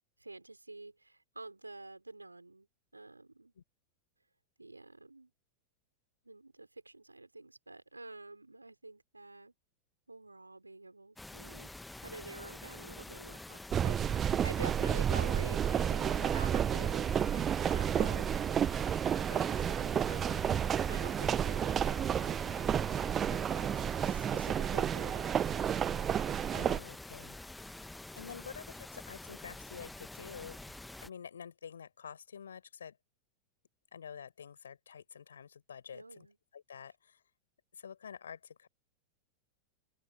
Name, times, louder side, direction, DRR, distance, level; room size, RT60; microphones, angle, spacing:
voice 1, 0.2-2.7 2.9-3.5 4.6-5.3 6.2-9.5 10.1-11.7 12.0-18.4 19.1-22.9 23.2-25.7 35.9-36.4, right 2 dB, 85° right, 5.3 m, -49 dB
sound 1, 11.2-31.1, left 2 dB, 5° left, 1.2 m, -48 dB
sound 2, 13.7-26.8, right 9 dB, 25° right, 0.7 m, -31 dB
voice 2, 18.0-18.3 26.2-30.6 31.0-33.0 33.9-36.3 36.5-37.2 37.7-38.7, left 7 dB, 70° left, 4.8 m, -49 dB
open air
figure-of-eight pair, 90°, 0 cm